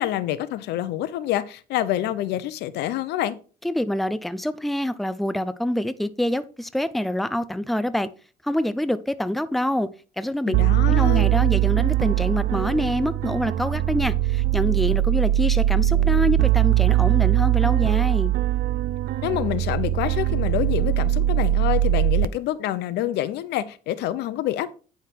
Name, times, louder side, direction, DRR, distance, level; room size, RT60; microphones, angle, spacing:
voice 1, 0.0-3.4 10.5-11.3 19.2-24.7, left 13 dB, 80° left, 0.8 m, -27 dB
voice 2, 3.6-8.1 8.4-9.9 10.2-10.6 10.9-18.3, left 1 dB, ahead, 0.6 m, -26 dB
sound 1, 10.5-22.3, right 14 dB, 65° right, 0.5 m, -21 dB
9.5 x 5.7 x 4.6 m
cardioid pair, 110°, 17 cm